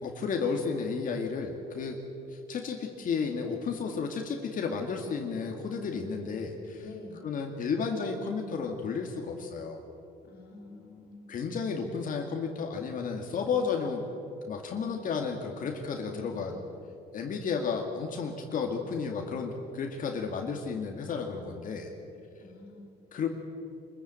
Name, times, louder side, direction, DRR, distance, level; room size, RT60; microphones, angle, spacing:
voice 1, 0.0-2.0 2.3-6.8 7.2-9.8 11.3-14.0 14.5-16.6 17.1-21.9 23.1-23.3, left 5 dB, 50° left, 2 dB, 2.2 m, -32 dB
voice 2, 6.8-7.3 10.2-11.3 16.1-16.6 22.4-23.0, left 3 dB, 70° left, -5 dB, 3.8 m, -47 dB
25.5 x 14.5 x 9.0 m, 2.8 s
cardioid pair, 110°, 17 cm